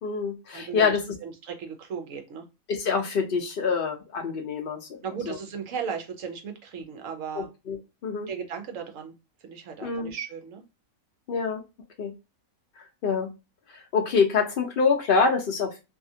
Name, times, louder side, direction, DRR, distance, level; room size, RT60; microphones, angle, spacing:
voice 1, 0.0-1.0 2.7-4.9 5.3-5.4 7.4-7.8 8.0-8.3 9.8-10.1 11.3-11.6 12.0-12.1 13.0-13.3 13.7-15.8, left 5 dB, 85° left, 2 dB, 0.4 m, -25 dB
voice 2, 0.5-2.5 5.0-7.5 8.3-9.1 9.4-10.6, right 6 dB, 65° right, 5 dB, 1.0 m, -36 dB
2.7 x 2.4 x 2.6 m, 0.26 s
omnidirectional pair, 1.6 m